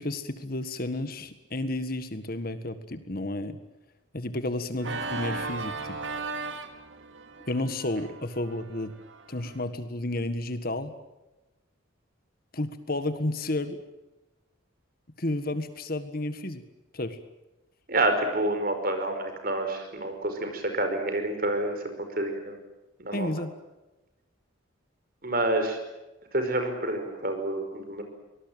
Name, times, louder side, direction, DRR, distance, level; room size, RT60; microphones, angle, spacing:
voice 1, 0.0-3.6 4.1-6.0 7.5-8.9 9.3-10.9 12.5-13.8 15.2-16.6 16.9-17.2 23.1-23.5, left 1 dB, 45° left, 10 dB, 1.7 m, -31 dB
Organ, 4.8-9.6, right 3 dB, 65° right, 2.5 m, -37 dB
voice 2, 17.9-22.6 23.0-23.3 25.2-25.8 26.3-28.0, right 1 dB, 45° right, 6 dB, 5.2 m, -28 dB
24.5 x 20.0 x 9.0 m, 1.0 s
head